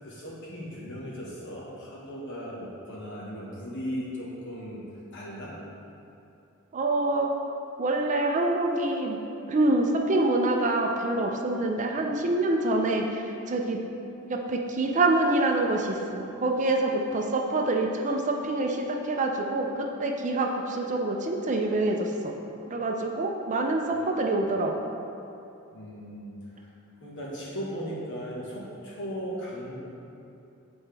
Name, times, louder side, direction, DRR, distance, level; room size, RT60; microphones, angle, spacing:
voice 1, 0.0-4.8 5.1-5.5 25.7-26.7 27.0-29.7, equal, 60° left, -5 dB, 1.4 m, -37 dB
voice 2, 6.7-7.3 7.8-9.2 9.5-13.8 14.2-22.3 22.7-24.7, right 2 dB, 35° right, 2 dB, 0.5 m, -26 dB
7.8 x 4.3 x 3.4 m, 2.8 s
head